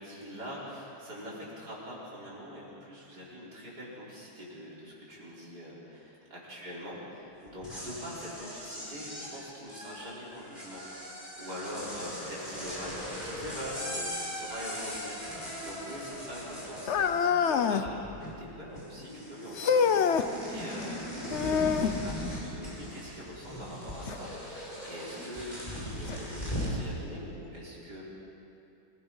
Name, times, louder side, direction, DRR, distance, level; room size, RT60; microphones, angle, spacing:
voice 1, 0.0-22.2 22.4-28.0, equal, 50° right, -6 dB, 5.5 m, -43 dB
sound 1, 7.5-17.5 17.8-18.5 18.8-26.8, equal, 20° left, 5.5 m, -39 dB
sound 2, 16.9-17.9 19.5-20.3 21.3-22.0 24.1-24.2 25.0-25.1 26.1-26.2, left 6 dB, 70° left, 0.6 m, -26 dB
26.0 x 19.5 x 5.6 m, 2.7 s
omnidirectional pair, 2.2 m